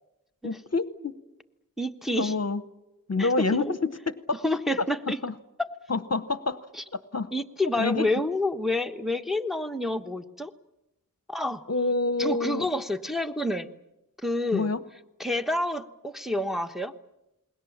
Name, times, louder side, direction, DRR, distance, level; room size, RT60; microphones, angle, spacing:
voice 1, 0.4-1.1 2.1-2.6 3.1-4.4 5.1-5.3 5.9-6.6 6.9-7.3 7.8-8.1 11.7-12.7 14.5-14.8, left 3 dB, 45° left, 14 dB, 0.9 m, -27 dB
voice 2, 1.8-2.3 3.2-3.7 4.4-5.2 6.7-6.8 7.3-10.5 11.3-11.6 12.2-13.7 14.2-14.7 15.2-16.9, left 1 dB, ahead, 5 dB, 1.1 m, -28 dB
29.0 x 21.0 x 7.2 m, 0.94 s
wide cardioid pair, 40°, 34 cm